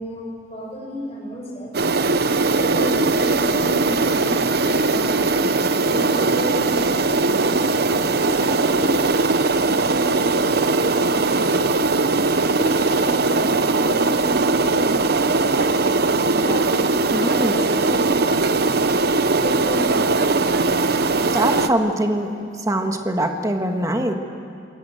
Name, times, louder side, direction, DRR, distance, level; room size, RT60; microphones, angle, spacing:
voice 1, 0.0-1.7 2.5-7.7 8.1-11.7 12.5-16.7 17.1-18.9 19.4-21.0, equal, 35° left, -3 dB, 6.4 m, -32 dB
sound 1, 1.7-21.7, right 3 dB, 60° right, 0.9 m, -20 dB
voice 2, 17.1-17.5 21.3-22.3 22.6-24.1, right 1 dB, 20° right, 4 dB, 1.8 m, -22 dB
27.5 x 21.5 x 7.9 m, 2.4 s
head